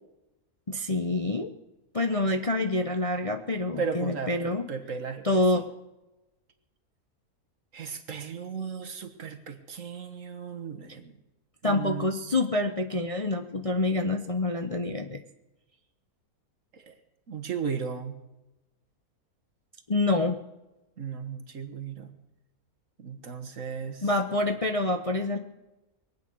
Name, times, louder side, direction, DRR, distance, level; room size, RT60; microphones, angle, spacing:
voice 1, 0.7-1.5 1.9-4.6 5.2-5.6 11.6-15.2 19.9-20.4 24.0-25.4, left 2 dB, 30° left, 5 dB, 0.7 m, -27 dB
voice 2, 3.8-5.6 7.7-11.2 11.6-12.1 16.7-16.9 17.3-18.2 21.0-22.1 23.0-24.1, right 6 dB, 55° right, 6 dB, 1.7 m, -36 dB
22.5 x 8.8 x 6.3 m, 1.0 s
omnidirectional pair, 1.7 m